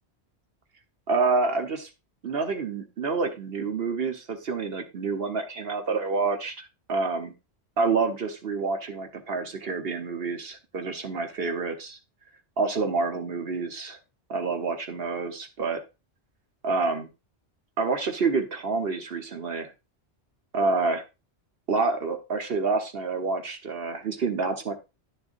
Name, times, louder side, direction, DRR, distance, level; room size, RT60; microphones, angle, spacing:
voice 1, 1.1-1.9 2.2-7.3 7.8-12.0 12.6-14.0 14.3-15.8 16.6-17.1 17.8-19.7 20.5-21.0 21.7-24.7, right 4 dB, 60° right, 5 dB, 1.3 m, -28 dB
10.5 x 6.8 x 2.6 m, 0.27 s
omnidirectional pair, 1.1 m